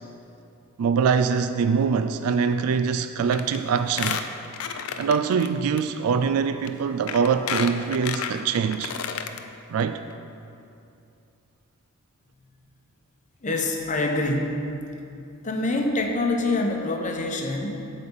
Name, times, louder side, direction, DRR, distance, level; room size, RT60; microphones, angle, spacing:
voice 1, 0.8-4.2 5.0-8.9 9.7-10.0, right 6 dB, 80° right, 9 dB, 0.3 m, -23 dB
Squeak, 3.3-3.6 3.9-5.5 5.8-5.9 6.7-6.8 7.1-9.4 9.8-9.9 10.1-10.2, left 7 dB, 80° left, 0.5 m, -31 dB
voice 2, 13.4-14.7 15.4-17.9, left 2 dB, 35° left, 2 dB, 0.8 m, -25 dB
8.0 x 5.0 x 7.2 m, 2.7 s
head